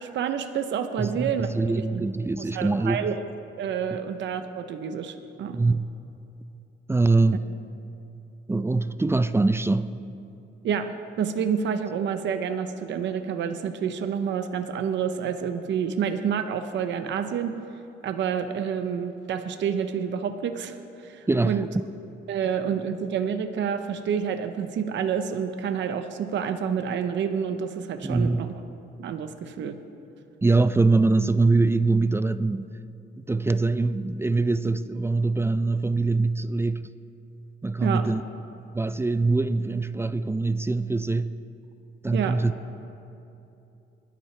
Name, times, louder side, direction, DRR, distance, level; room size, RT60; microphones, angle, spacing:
voice 1, 0.0-1.5 1.9-2.0 2.4-3.2 3.6-5.6 10.6-17.6 18.0-21.7 22.3-28.5 29.0-29.8 37.8-38.1 42.1-42.4, right 7 dB, 65° right, 0.8 m, -28 dB
voice 2, 1.0-3.0 5.5-5.9 6.9-7.5 8.5-10.0 21.3-21.6 28.0-28.5 30.4-32.7 33.2-36.9 37.6-38.2 38.7-41.4 42.0-42.5, right 3 dB, 10° right, 0.4 m, -23 dB
22.0 x 12.0 x 3.3 m
cardioid pair, 90°, 20 cm